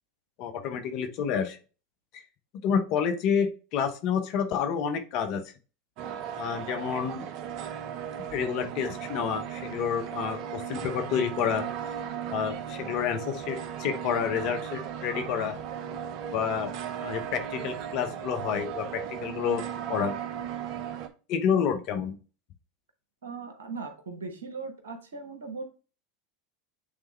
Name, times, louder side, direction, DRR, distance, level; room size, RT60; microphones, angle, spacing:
voice 1, 0.4-1.6 2.6-5.4 6.4-7.3 8.3-11.7 12.3-15.6 16.3-16.7 17.0-20.1 21.3-22.2, left 7 dB, 55° left, 8 dB, 1.1 m, -29 dB
sound 1, 6.0-21.1, right 9 dB, 55° right, 0.8 m, -36 dB
voice 2, 23.2-25.6, right 4 dB, 85° right, 6 dB, 1.2 m, -39 dB
8.6 x 3.5 x 3.2 m, 0.34 s
hypercardioid pair, 85°, 0 cm